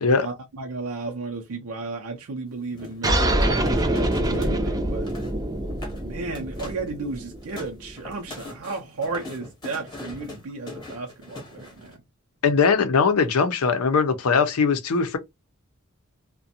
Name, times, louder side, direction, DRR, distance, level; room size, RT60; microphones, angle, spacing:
voice 1, 0.2-5.1 6.0-12.0, right 3 dB, 80° right, 0.6 m, -34 dB
sound 1, 2.7-4.6 4.9-5.4 5.7-6.0 6.3-6.9 7.2-12.0, left 2 dB, 20° left, 0.9 m, -41 dB
sound 2, 3.0-8.1, right 1 dB, 15° right, 0.5 m, -25 dB
voice 2, 12.4-15.2, left 5 dB, 80° left, 0.6 m, -20 dB
2.5 x 2.1 x 2.7 m
head